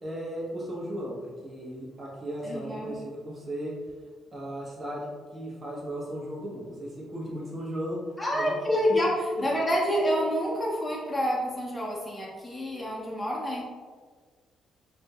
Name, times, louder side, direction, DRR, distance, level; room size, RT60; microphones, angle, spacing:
voice 1, 0.0-3.7 4.3-8.0 8.3-8.6 8.9-9.0, right 1 dB, 35° right, -4 dB, 1.1 m, -36 dB
voice 2, 2.4-3.0 8.2-9.1 9.4-13.6, equal, 10° left, -5 dB, 0.6 m, -28 dB
3.5 x 2.8 x 2.3 m, 1.6 s
cardioid pair, 90°, 0 cm